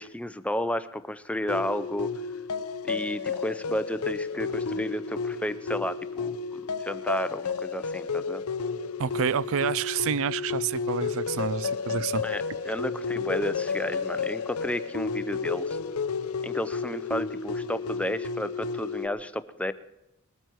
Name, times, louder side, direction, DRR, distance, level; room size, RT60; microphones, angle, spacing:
voice 1, 0.0-2.1 2.8-8.4 12.2-15.8 16.4-19.7, left 1 dB, 5° left, 0.5 m, -32 dB
sound 1, 1.5-19.1, left 5 dB, 75° left, 0.6 m, -32 dB
voice 2, 9.0-12.2, right 7 dB, 70° right, 0.4 m, -28 dB
21.0 x 13.5 x 4.6 m
head